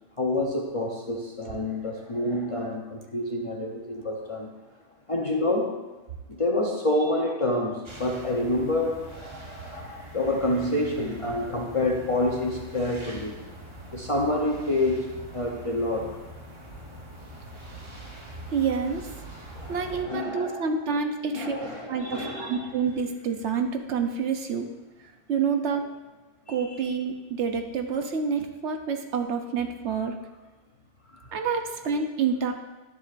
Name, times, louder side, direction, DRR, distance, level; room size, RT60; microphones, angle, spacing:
voice 1, 0.2-4.5 5.1-5.8 6.3-13.4 13.9-16.2 19.5-20.7 21.3-22.7 26.5-26.8 31.1-31.4, left 1 dB, 35° left, -1 dB, 0.7 m, -28 dB
sound 1, 7.8-20.0, right 1 dB, 25° right, 0.9 m, -43 dB
voice 2, 18.5-19.0 19.7-24.7 25.3-25.8 26.5-30.1 31.3-32.5, right 6 dB, 70° right, 5 dB, 1.0 m, -28 dB
11.0 x 7.0 x 2.5 m, 1.2 s
omnidirectional pair, 1.3 m